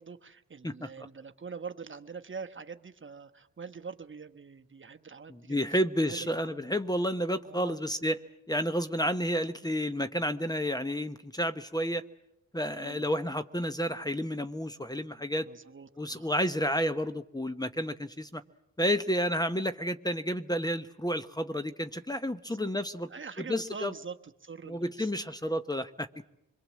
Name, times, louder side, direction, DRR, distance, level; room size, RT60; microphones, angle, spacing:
voice 1, 0.0-5.6 6.1-6.5 7.5-7.8 12.8-13.0 15.4-16.3 22.5-22.7 23.1-25.1, right 5 dB, 35° right, 7 dB, 1.2 m, -44 dB
voice 2, 5.3-8.2 8.5-12.0 12.5-15.5 16.0-18.4 18.8-23.1 23.4-23.9 24.7-26.1, equal, 10° left, 10 dB, 1.0 m, -31 dB
27.0 x 22.0 x 7.5 m, 0.85 s
cardioid pair, 65°, 33 cm